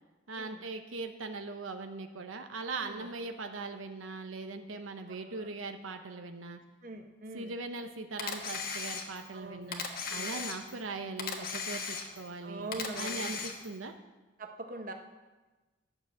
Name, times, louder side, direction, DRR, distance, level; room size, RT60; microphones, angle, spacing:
voice 1, 0.3-6.6 7.3-9.8 10.1-13.9, right 3 dB, 90° right, 6 dB, 0.9 m, -40 dB
voice 2, 6.8-7.5 9.3-9.8 10.1-10.5 12.4-13.3 14.4-14.9, right 2 dB, 45° right, 4 dB, 1.1 m, -43 dB
Camera, 8.2-9.3 9.7-10.9 11.2-12.3 12.7-13.8, left 5 dB, 50° left, 1.4 m, -37 dB
11.5 x 7.0 x 8.3 m, 1.2 s
head